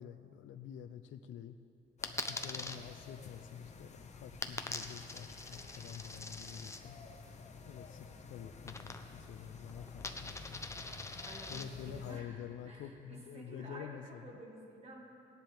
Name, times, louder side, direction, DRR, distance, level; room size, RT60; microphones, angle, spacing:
voice 1, 0.0-1.6 2.3-7.0 7.7-10.6 11.5-14.2, left 9 dB, 80° left, 8 dB, 0.5 m, -48 dB
sound 1, 2.0-12.2, left 4 dB, 35° left, 0.9 m, -51 dB
Coin (dropping), 2.0-2.8 4.4-6.8 8.7-9.3 9.6-11.6, left 3 dB, 15° left, 0.6 m, -43 dB
voice 2, 11.2-15.0, right 1 dB, 30° right, 0 dB, 1.9 m, -51 dB
18.5 x 10.5 x 3.4 m, 2.7 s
cardioid pair, 120°, 20 cm